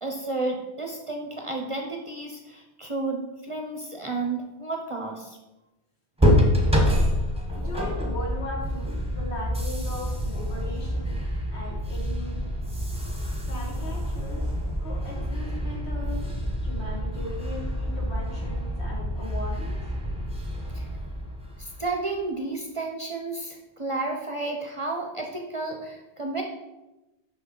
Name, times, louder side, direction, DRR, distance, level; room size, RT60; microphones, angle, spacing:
voice 1, 0.0-5.4 20.7-20.8 21.6-26.4, right 3 dB, 35° right, 2 dB, 0.6 m, -32 dB
sound 1, 6.2-21.9, equal, 5° right, 0.8 m, -27 dB
voice 2, 7.5-11.2 11.5-12.4 13.5-14.5 14.8-16.3 16.6-19.8, left 1 dB, 75° left, -2 dB, 2.0 m, -38 dB
6.0 x 5.9 x 3.8 m, 1.0 s
omnidirectional pair, 1.1 m